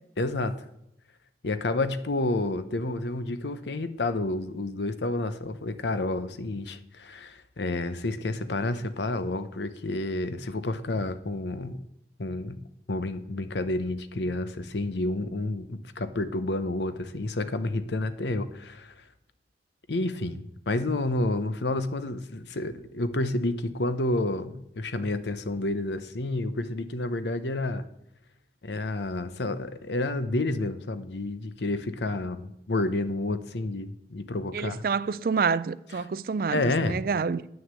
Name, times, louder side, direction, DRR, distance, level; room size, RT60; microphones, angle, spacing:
voice 1, 0.2-0.6 1.4-11.8 12.2-18.9 19.9-27.8 28.6-34.8 35.9-36.1 36.5-37.0, left 2 dB, 80° left, 0.8 m, -30 dB
voice 2, 34.5-36.6 36.9-37.4, right 5 dB, 55° right, 0.4 m, -27 dB
9.4 x 6.3 x 8.2 m
head